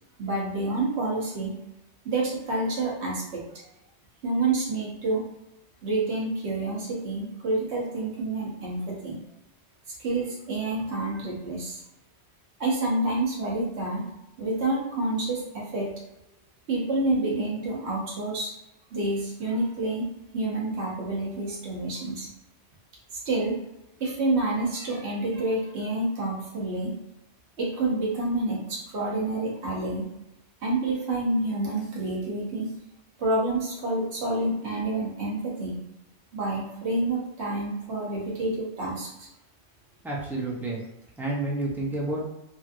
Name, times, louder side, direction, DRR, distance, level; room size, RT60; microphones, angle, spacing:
voice 1, 0.2-1.6 2.0-3.4 4.2-5.2 5.8-9.2 10.0-11.8 12.6-14.0 14.4-15.9 16.7-18.5 18.9-20.1 20.3-22.3 23.2-23.6 24.0-26.9 27.6-30.1 30.6-32.7 33.2-35.8 36.3-39.3, right 2 dB, 65° right, -4 dB, 1.2 m, -28 dB
voice 2, 40.0-40.8 41.2-42.3, right 2 dB, 5° right, -5 dB, 0.3 m, -29 dB
3.0 x 2.7 x 2.5 m, 0.87 s
omnidirectional pair, 1.2 m